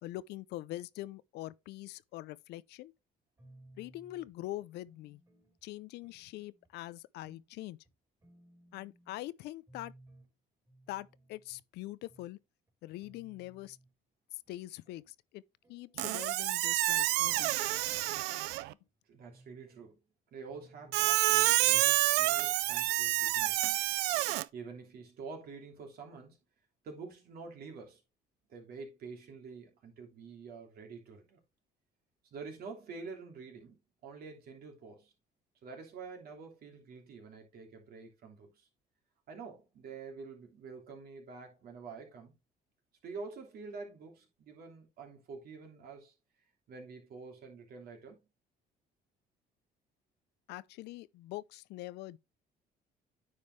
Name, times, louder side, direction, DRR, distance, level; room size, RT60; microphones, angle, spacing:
voice 1, 0.0-2.9 3.8-5.2 5.6-7.8 8.7-9.9 10.9-12.4 12.8-13.8 14.5-15.4 15.7-17.5 50.5-52.2, left 16 dB, 80° left, 0.5 m, -43 dB
sound 1, 3.4-4.3 4.8-5.6 6.0-6.7 7.2-7.5 7.8-7.9 8.2-9.2 9.7-10.3 10.7-11.6 12.1-12.3 12.7-12.8 13.0-13.9 14.5-15.1 15.6-16.3 16.8-17.4 17.8-18.9 19.3-19.9 20.5-21.1 21.7-22.0 22.3-22.4 22.6-22.7, right 1 dB, 20° right, 3.9 m, -61 dB
Squeak, 16.0-18.7 20.9-24.4, right 18 dB, 85° right, 0.4 m, -28 dB
voice 2, 19.1-20.0 20.3-23.7 24.5-26.4 26.8-28.0 28.5-31.4 32.3-35.1 35.6-38.7 39.3-42.3 43.0-46.1 46.7-48.2, right 4 dB, 65° right, 3.0 m, -47 dB
9.6 x 5.1 x 3.1 m
cardioid pair, 110°, 17 cm